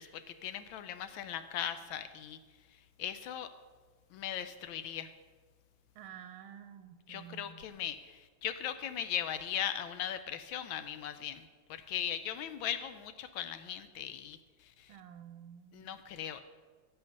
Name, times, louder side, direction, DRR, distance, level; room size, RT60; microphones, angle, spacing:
voice 1, 0.0-2.4 3.0-3.5 4.1-5.1 7.1-11.4 11.7-14.4 14.8-14.9 15.7-16.4, left 10 dB, 80° left, 11 dB, 1.3 m, -38 dB
voice 2, 5.9-7.7 14.9-16.0, right 9 dB, 85° right, 9 dB, 1.4 m, -51 dB
10.5 x 8.0 x 5.3 m, 1.4 s
omnidirectional pair, 2.2 m